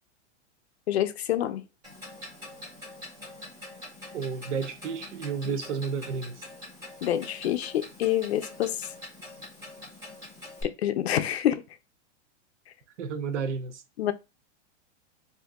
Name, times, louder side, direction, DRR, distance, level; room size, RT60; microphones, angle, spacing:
voice 1, 0.9-1.6 7.0-8.9 10.6-11.6 14.0-14.1, left 11 dB, 60° left, 0.5 m, -27 dB
Clock, 1.8-10.6, left 2 dB, 10° right, 0.6 m, -45 dB
voice 2, 4.1-6.4 13.0-13.8, right 5 dB, 75° right, 0.7 m, -32 dB
2.7 x 2.6 x 3.5 m
supercardioid pair, 175°, 37 cm